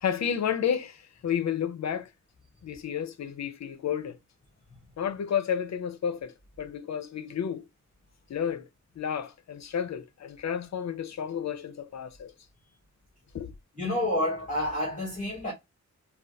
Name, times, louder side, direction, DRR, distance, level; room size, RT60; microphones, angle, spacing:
voice 1, 0.0-2.1 2.6-4.2 5.0-7.7 8.3-8.7 9.0-12.3 13.3-13.5, left 8 dB, 60° left, 0.5 m, -31 dB
voice 2, 13.8-15.5, left 1 dB, 25° left, 1.1 m, -29 dB
3.4 x 2.3 x 2.5 m
wide cardioid pair, 155°, 30 cm